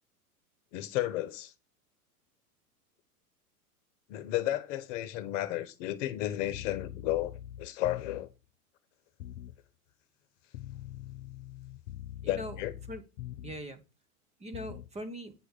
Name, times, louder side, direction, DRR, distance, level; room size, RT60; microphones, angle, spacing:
voice 1, 0.7-1.5 4.1-8.3 12.3-12.7, left 14 dB, 50° left, 1.1 m, -33 dB
sound 1, 6.5-8.4 9.2-9.6 10.5-13.7 14.5-14.9, left 12 dB, 75° left, 0.6 m, -44 dB
voice 2, 12.2-13.0 13.4-13.8 14.4-15.3, equal, 15° right, 1.3 m, -41 dB
9.0 x 4.9 x 6.6 m
hypercardioid pair, 105°, 46 cm